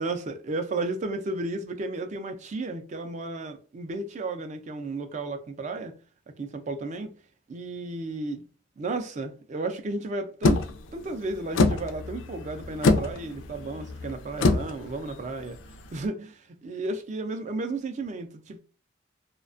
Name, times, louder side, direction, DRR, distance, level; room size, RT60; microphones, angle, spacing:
voice 1, 0.0-5.9 6.4-7.1 7.5-8.4 8.8-10.7 10.9-15.5 15.9-18.6, right 2 dB, 40° right, 0.4 m, -33 dB
sound 1, 10.4-16.0, left 3 dB, 80° left, 0.3 m, -26 dB
2.4 x 2.2 x 2.5 m
head